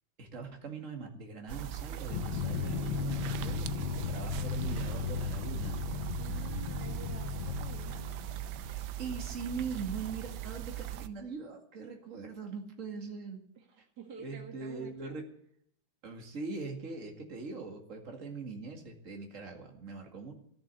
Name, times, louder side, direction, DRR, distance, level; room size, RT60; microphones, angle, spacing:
voice 1, 0.2-5.8 8.7-13.4 14.2-15.2 16.0-20.3, right 4 dB, 40° right, 3 dB, 2.5 m, -41 dB
sound 1, 1.5-11.1, right 12 dB, 85° right, 1.5 m, -39 dB
Drum, 2.1-8.6, left 7 dB, 85° left, 1.7 m, -36 dB
voice 2, 6.2-8.1 13.6-15.2, right 6 dB, 60° right, 2 dB, 2.5 m, -49 dB
14.0 x 7.7 x 9.5 m, 0.70 s
omnidirectional pair, 2.1 m